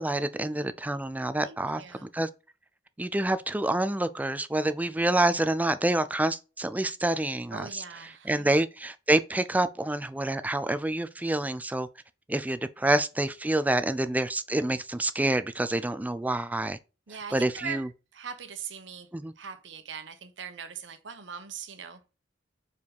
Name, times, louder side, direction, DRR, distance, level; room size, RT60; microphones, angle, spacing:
voice 1, 0.0-1.8 2.1-2.3 3.0-7.8 8.2-11.9 12.3-16.8 17.3-17.9 19.1-19.3, right 1 dB, 10° right, 0.4 m, -27 dB
voice 2, 1.4-2.1 7.5-8.6 12.8-12.9 17.1-19.1 19.4-22.0, right 6 dB, 65° right, 1.0 m, -41 dB
4.7 x 4.7 x 5.3 m
head